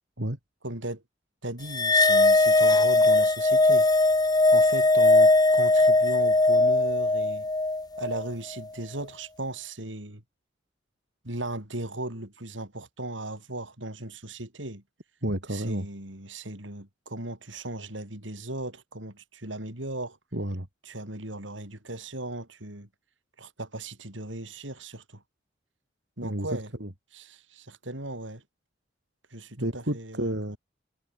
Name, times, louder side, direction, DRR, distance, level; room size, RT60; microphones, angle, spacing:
voice 1, 0.6-1.0 1.4-3.9 4.5-7.5 8.0-10.2 11.2-14.8 15.5-20.2 20.9-22.9 23.4-25.2 26.2-26.7 27.1-28.4 29.3-30.3, right 2 dB, 80° right, 5.9 m, -37 dB
sound 1, 1.7-8.3, left 2 dB, 20° left, 1.5 m, -20 dB
voice 2, 15.2-15.9 20.3-20.7 26.2-26.9 29.6-30.6, right 1 dB, 65° right, 4.2 m, -31 dB
head